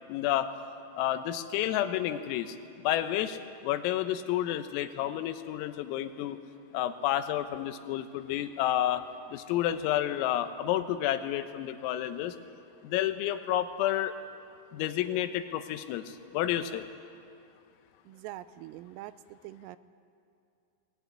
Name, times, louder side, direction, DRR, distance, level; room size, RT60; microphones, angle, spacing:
voice 1, 0.1-0.5 1.0-6.4 6.7-12.4 12.8-14.2 14.7-16.9, left 12 dB, 90° left, 9 dB, 3.6 m, -30 dB
voice 2, 18.1-19.8, right 15 dB, 85° right, 14 dB, 3.3 m, -44 dB
20.0 x 19.0 x 9.7 m, 2.5 s
omnidirectional pair, 5.9 m